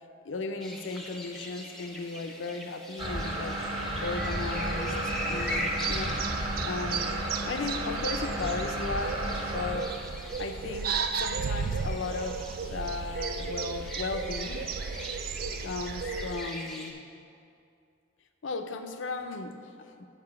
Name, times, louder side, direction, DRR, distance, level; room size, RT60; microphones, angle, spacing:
voice 1, 0.2-3.6 4.0-5.0 5.3-6.3 6.6-7.2 7.4-10.0 10.4-14.7 15.6-17.0 18.4-20.1, left 3 dB, 75° left, 7 dB, 0.6 m, -36 dB
sound 1, 0.6-16.9, left 1 dB, ahead, 0.7 m, -41 dB
sound 2, 3.0-9.7, right 1 dB, 25° right, 1.5 m, -33 dB
sound 3, 5.0-16.4, right 5 dB, 50° right, 0.3 m, -35 dB
6.7 x 6.5 x 5.9 m, 2.5 s
head